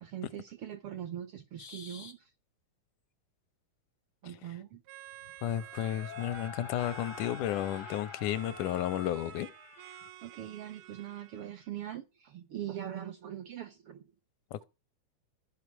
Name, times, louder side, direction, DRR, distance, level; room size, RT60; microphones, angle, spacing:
voice 1, 0.0-2.3 4.2-4.8 10.2-14.1, right 11 dB, 70° right, 1.3 m, -42 dB
sound 1, 1.6-2.1 5.1-10.1, left 6 dB, 65° left, 0.7 m, -47 dB
sound 2, 4.8-11.7, right 13 dB, 90° right, 2.4 m, -51 dB
voice 2, 5.4-9.5 14.5-14.6, left 11 dB, 80° left, 2.2 m, -33 dB
14.5 x 5.1 x 8.1 m
omnidirectional pair, 3.6 m